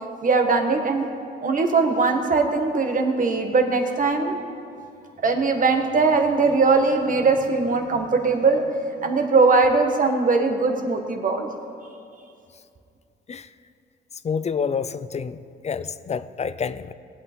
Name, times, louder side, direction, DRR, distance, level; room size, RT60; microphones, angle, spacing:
voice 1, 0.2-1.1 1.4-4.4 5.2-8.6 9.0-11.5, right 4 dB, 40° right, 4 dB, 1.7 m, -20 dB
voice 2, 14.2-15.4 15.6-16.9, left 6 dB, 35° left, 14 dB, 0.5 m, -28 dB
21.0 x 8.4 x 4.5 m, 2.4 s
cardioid pair, 90°, 20 cm